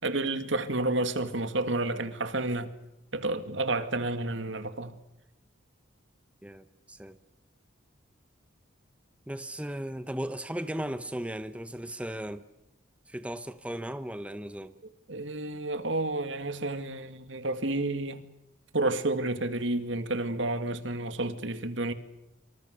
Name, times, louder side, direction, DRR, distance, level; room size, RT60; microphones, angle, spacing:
voice 1, 0.0-2.7 3.1-5.0 15.1-18.3 18.7-21.9, right 2 dB, 70° right, 2.3 m, -30 dB
voice 2, 6.4-7.2 9.3-12.4 13.1-14.7, right 1 dB, 5° right, 0.8 m, -36 dB
26.0 x 26.0 x 6.8 m
head